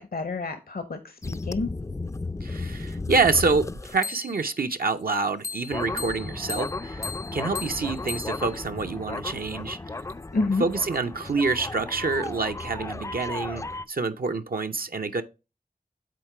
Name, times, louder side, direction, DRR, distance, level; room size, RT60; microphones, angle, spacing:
voice 1, 0.0-1.7 10.3-10.6, left 3 dB, 65° left, 0.7 m, -29 dB
sound 1, 1.2-4.6 5.4-13.8, left 3 dB, 20° left, 0.3 m, -34 dB
voice 2, 2.4-10.0 10.6-15.2, right 4 dB, 65° right, 0.6 m, -27 dB
7.6 x 3.7 x 4.7 m
cardioid pair, 40°, 17 cm